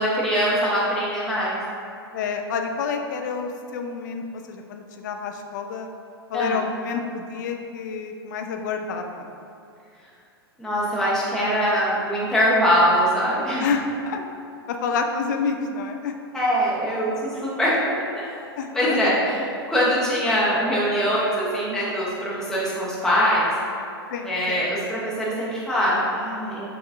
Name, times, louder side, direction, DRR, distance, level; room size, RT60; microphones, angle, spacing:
voice 1, 0.0-1.6 6.3-6.6 10.6-13.6 16.3-17.9 18.1-18.5 18.7-19.3 19.7-23.5 24.3-26.7, equal, 5° left, -8 dB, 0.9 m, -22 dB
voice 2, 2.1-5.9 6.3-9.3 13.6-14.2 14.7-16.2 18.6-19.1 24.1-24.6, left 5 dB, 45° left, 4 dB, 0.4 m, -29 dB
6.8 x 2.4 x 2.6 m, 2.5 s
figure-of-eight pair, 100°, 14 cm